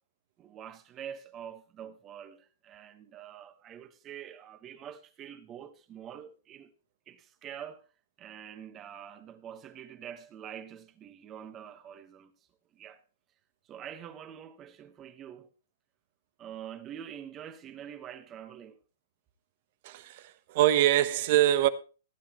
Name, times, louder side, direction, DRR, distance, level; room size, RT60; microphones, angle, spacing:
voice 1, 0.4-6.7 7.1-7.8 8.2-12.3 12.7-13.0 13.6-15.5 16.4-18.8, right 9 dB, 25° right, 1.3 m, -45 dB
voice 2, 19.8-21.7, right 13 dB, 50° right, 1.0 m, -24 dB
16.0 x 10.5 x 3.1 m
hypercardioid pair, 145°, 0 cm